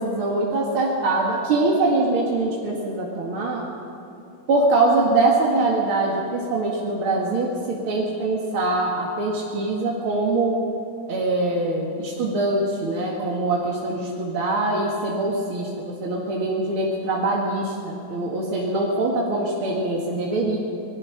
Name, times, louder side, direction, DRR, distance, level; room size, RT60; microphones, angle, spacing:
voice 1, 0.0-3.6 4.5-10.6 11.1-15.7 16.0-20.6, right 2 dB, 85° right, -3 dB, 2.9 m, -23 dB
25.0 x 20.0 x 5.9 m, 2.7 s
omnidirectional pair, 2.3 m